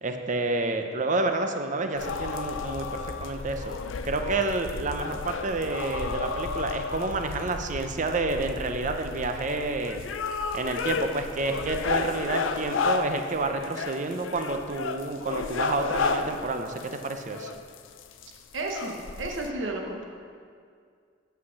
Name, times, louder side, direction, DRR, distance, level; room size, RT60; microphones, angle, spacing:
voice 1, 0.0-3.7 4.0-10.0 10.5-17.5, right 2 dB, 40° right, 6 dB, 0.6 m, -29 dB
sound 1, 2.0-19.5, left 4 dB, 85° left, 0.5 m, -32 dB
voice 2, 18.5-20.0, right 2 dB, 75° right, 1 dB, 1.1 m, -32 dB
8.6 x 5.8 x 6.3 m, 2.2 s
head